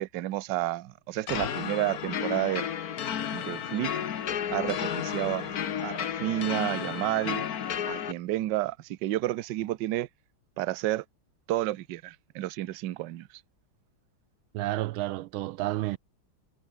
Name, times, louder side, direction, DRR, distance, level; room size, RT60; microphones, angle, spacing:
voice 1, 0.0-2.7 3.3-3.9 4.5-7.4 7.9-10.1 10.6-11.0 11.5-13.3, right 15 dB, 65° right, 1.3 m, -31 dB
sound 1, 1.3-8.1, left 9 dB, 50° left, 1.4 m, -32 dB
voice 2, 14.5-16.0, right 16 dB, 85° right, 1.4 m, -30 dB
omnidirectional pair, 2.3 m